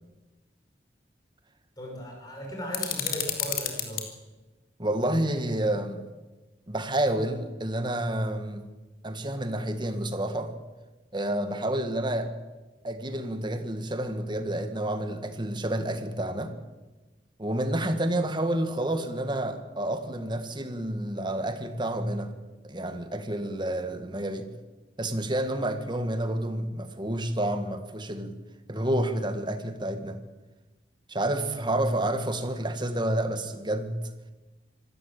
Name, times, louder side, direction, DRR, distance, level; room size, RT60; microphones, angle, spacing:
voice 1, 1.8-4.1, equal, 20° left, -1 dB, 6.5 m, -37 dB
sound 1, 2.7-4.1, left 8 dB, 55° left, 3.2 m, -31 dB
voice 2, 4.8-6.0 6.7-8.6 9.0-10.5 11.1-12.3 12.8-16.5 17.4-22.3 22.6-24.5 25.0-28.4 28.7-30.2 31.1-34.0, right 1 dB, 25° right, 8 dB, 1.9 m, -29 dB
26.0 x 13.0 x 8.9 m, 1.2 s
head